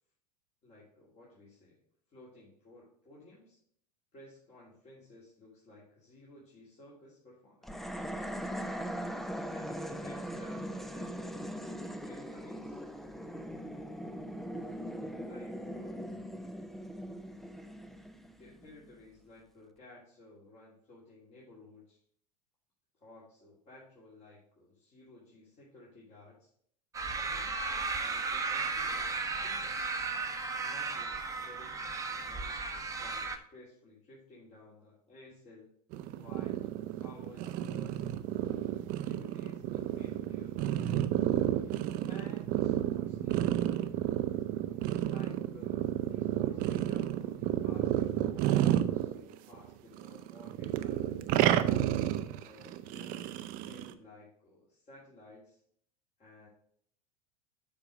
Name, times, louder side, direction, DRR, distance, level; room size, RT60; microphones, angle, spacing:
voice 1, 0.6-1.8 2.1-3.6 4.1-8.1 9.5-12.8 15.2-16.1 18.4-22.0 23.0-26.5 27.1-29.9 30.6-35.7 36.2-38.6 39.0-40.6 42.1-43.4 45.0-51.0 51.3-51.9 52.4-55.6 56.2-56.5, left 2 dB, 35° left, -6 dB, 2.8 m, -55 dB
sound 1, 7.6-19.0, equal, ahead, 0.6 m, -40 dB
sound 2, 26.9-33.4, right 4 dB, 15° right, 0.9 m, -35 dB
sound 3, 35.9-49.7 50.0-53.9, right 12 dB, 45° right, 0.6 m, -31 dB
7.3 x 4.9 x 5.1 m, 0.63 s
hypercardioid pair, 90°, 20 cm